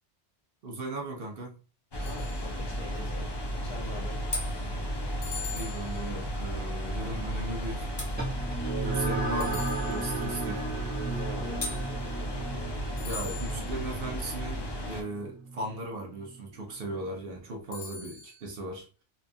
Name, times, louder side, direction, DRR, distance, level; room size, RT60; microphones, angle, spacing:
voice 1, 0.6-1.6 5.5-7.9 8.8-10.6 13.0-19.0, right 1 dB, 60° right, 0.8 m, -37 dB
sound 1, 1.9-15.0, equal, 35° left, 0.4 m, -34 dB
sound 2, 2.0-2.9 5.2-6.5 9.4-10.5 13.0-13.9 17.7-18.5, left 6 dB, 80° left, 1.0 m, -43 dB
voice 2, 2.0-3.3 3.6-4.2 11.1-11.7, left 2 dB, 60° left, 1.0 m, -43 dB
sound 3, 8.2-17.0, right 3 dB, 10° right, 0.7 m, -35 dB
2.8 x 2.2 x 2.6 m
omnidirectional pair, 1.2 m